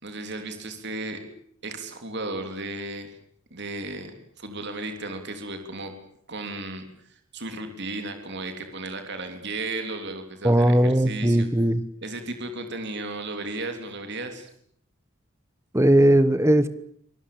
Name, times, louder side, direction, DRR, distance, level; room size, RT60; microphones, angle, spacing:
voice 1, 0.0-1.2 1.6-3.2 3.5-5.9 6.3-6.8 7.1-11.5 12.0-14.5, right 2 dB, 55° right, 6 dB, 3.5 m, -34 dB
voice 2, 10.4-11.8 15.7-16.7, right 1 dB, 15° right, 14 dB, 1.1 m, -18 dB
25.5 x 19.5 x 8.7 m, 0.66 s
head